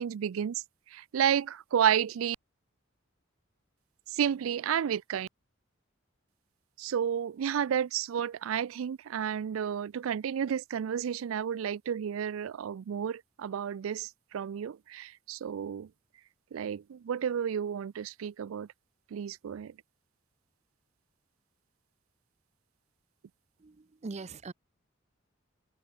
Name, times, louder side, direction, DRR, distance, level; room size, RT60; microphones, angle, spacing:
voice 1, 0.0-2.4 4.1-5.3 6.8-15.9 16.5-18.7 19.1-19.8, right 8 dB, 85° right, 0.4 m, -31 dB
voice 2, 23.6-24.5, right 3 dB, 35° right, 0.5 m, -42 dB
head